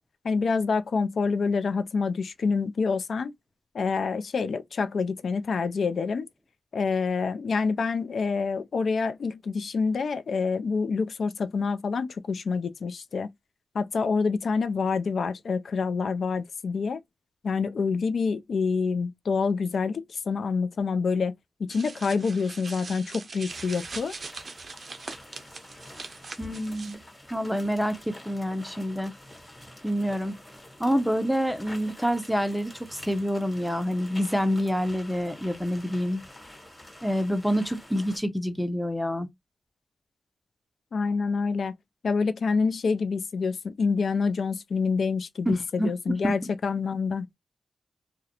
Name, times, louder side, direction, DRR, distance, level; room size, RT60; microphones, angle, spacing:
voice 1, 0.2-3.3 3.7-6.3 6.7-13.3 13.7-17.0 17.4-21.3 21.6-24.1 40.9-41.7 42.0-47.3, left 5 dB, 70° left, 0.3 m, -27 dB
sound 1, 21.7-27.0, right 4 dB, 60° right, 0.5 m, -41 dB
sound 2, 23.5-38.2, left 1 dB, 15° left, 1.2 m, -47 dB
voice 2, 26.4-27.0 27.3-29.1 29.8-30.4 30.8-36.2 37.0-39.3 45.5-45.9 46.2-46.3, equal, ahead, 0.5 m, -27 dB
2.3 x 2.0 x 2.8 m
cardioid pair, 50°, 0 cm